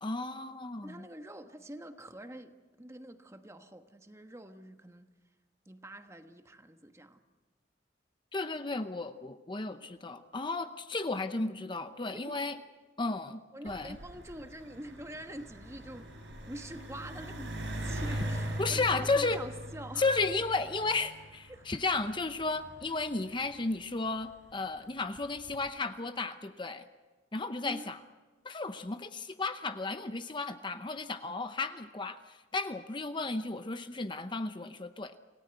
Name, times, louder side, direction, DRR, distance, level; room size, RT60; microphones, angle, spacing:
voice 1, 0.0-1.0 8.3-12.6 13.0-14.0 18.6-19.4 20.0-26.9 27.3-28.0 28.4-35.1, left 3 dB, 25° left, 9 dB, 0.7 m, -33 dB
voice 2, 0.8-5.1 5.7-7.2 12.1-12.4 13.0-13.2 13.5-16.1 16.5-20.1 21.5-21.7 27.6-27.9, right 1 dB, 15° right, 7 dB, 1.3 m, -46 dB
sound 1, 13.7-24.4 25.2-25.6, right 1 dB, 70° right, 7.5 m, -41 dB
28.0 x 17.5 x 8.1 m, 1.3 s
head